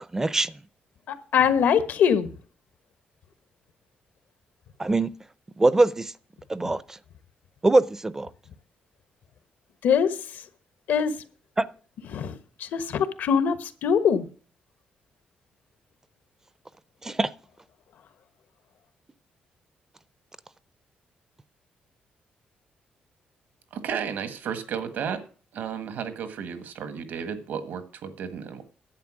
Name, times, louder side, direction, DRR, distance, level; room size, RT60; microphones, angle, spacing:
voice 1, 0.1-0.6 4.8-5.1 5.6-6.1 6.5-7.0 7.6-8.3 11.6-11.7 17.0-17.3, right 2 dB, 15° right, 0.5 m, -22 dB
voice 2, 1.1-2.3 9.8-10.2 10.9-11.1 12.1-14.2, left 7 dB, 80° left, 1.3 m, -23 dB
voice 3, 23.7-25.2 25.5-28.6, right 7 dB, 80° right, 1.6 m, -33 dB
10.5 x 8.1 x 6.2 m
cardioid pair, 130°, 3 cm